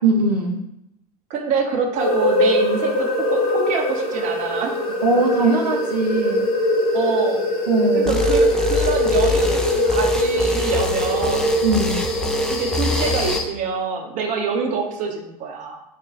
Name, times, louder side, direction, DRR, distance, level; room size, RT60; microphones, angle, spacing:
voice 1, 0.0-0.6 5.0-6.5 7.7-8.2 11.6-12.0, right 3 dB, 85° right, 0 dB, 0.5 m, -20 dB
voice 2, 1.3-4.8 6.9-7.4 7.9-11.6 12.5-15.8, right 5 dB, 40° right, 3 dB, 0.6 m, -26 dB
sound 1, 2.0-13.4, left 1 dB, 65° left, 0.8 m, -21 dB
sound 2, 8.1-13.4, left 3 dB, 5° left, 0.3 m, -26 dB
3.2 x 2.2 x 3.8 m, 0.82 s
figure-of-eight pair, 80°, 20 cm